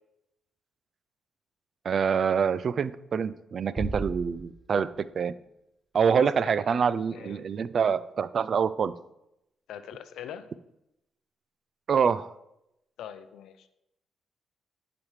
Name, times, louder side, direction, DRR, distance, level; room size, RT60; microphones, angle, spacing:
voice 1, 1.8-5.3 5.9-8.9 11.9-12.3, right 6 dB, 55° right, 16 dB, 0.3 m, -26 dB
Bass drum, 3.8-5.2, right 2 dB, 15° right, 0.8 m, -36 dB
voice 2, 6.1-6.8 7.1-7.4 9.7-10.5 13.0-13.7, left 9 dB, 80° left, 11 dB, 0.5 m, -42 dB
10.5 x 4.9 x 3.3 m, 0.86 s
supercardioid pair, 65°, 0 cm